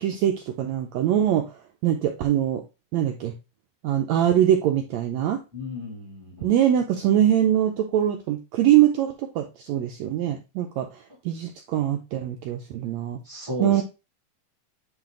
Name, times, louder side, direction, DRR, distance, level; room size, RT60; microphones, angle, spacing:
voice 1, 0.0-1.5 1.8-2.6 2.9-3.3 3.8-5.4 6.4-13.2 13.6-13.8, right 11 dB, 90° right, 4 dB, 1.5 m, -23 dB
voice 2, 5.5-6.5 13.2-13.8, left 1 dB, 10° right, -4 dB, 1.6 m, -33 dB
9.1 x 3.3 x 3.7 m, 0.28 s
omnidirectional pair, 3.9 m